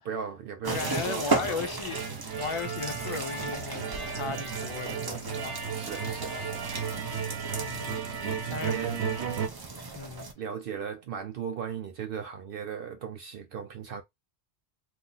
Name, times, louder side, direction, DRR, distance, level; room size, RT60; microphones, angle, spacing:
voice 1, 0.0-1.7 5.7-6.7 8.1-9.2 10.4-14.0, right 7 dB, 65° right, 0.7 m, -37 dB
sound 1, 0.6-10.3, right 3 dB, 35° right, 0.4 m, -36 dB
voice 2, 0.7-5.7 7.6-8.0 8.5-8.8 9.9-10.3, left 5 dB, 50° left, 0.3 m, -36 dB
sound 2, 1.9-9.5, right 6 dB, 80° right, 1.0 m, -34 dB
2.8 x 2.3 x 3.7 m
omnidirectional pair, 1.1 m